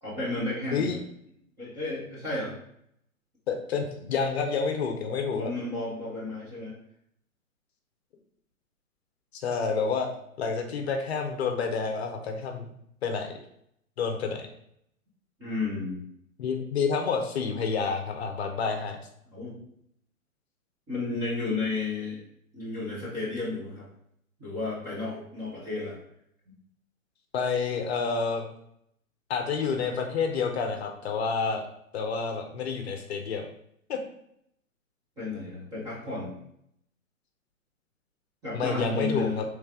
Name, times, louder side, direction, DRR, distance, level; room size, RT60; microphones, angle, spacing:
voice 1, 0.0-0.9 1.6-2.5 5.3-6.7 15.4-16.0 19.3-19.5 20.9-22.2 22.5-23.9 24.4-26.0 35.2-36.3 38.4-39.4, left 3 dB, 10° right, -9 dB, 0.5 m, -32 dB
voice 2, 3.5-5.5 9.4-10.1 10.4-12.7 13.0-13.4 14.0-14.5 16.4-19.0 27.3-28.5 29.3-31.6 31.9-33.5 33.9-34.0 38.5-39.4, left 5 dB, 50° left, 4 dB, 0.6 m, -29 dB
3.2 x 3.2 x 3.5 m, 0.73 s
hypercardioid pair, 140°, 42 cm